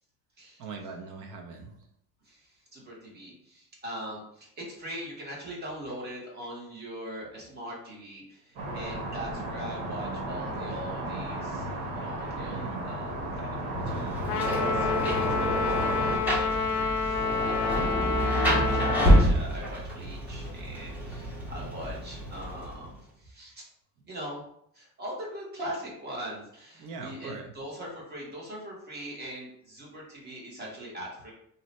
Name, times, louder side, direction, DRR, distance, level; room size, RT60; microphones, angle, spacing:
voice 1, 0.6-1.7 12.4-12.9 26.8-27.5, right 4 dB, 50° right, 3 dB, 0.6 m, -41 dB
voice 2, 2.2-11.7 11.9-17.9 18.5-23.6 24.1-24.4 24.7-31.3, equal, 25° right, -4 dB, 0.9 m, -41 dB
sound 1, 8.6-16.2, right 1 dB, 75° right, 1.2 m, -33 dB
Rain, 13.9-22.9, right 1 dB, 5° right, 0.6 m, -28 dB
Trumpet, 14.3-19.3, left 5 dB, 80° left, 0.6 m, -28 dB
2.7 x 2.1 x 4.0 m, 0.72 s
cardioid pair, 165°, 42 cm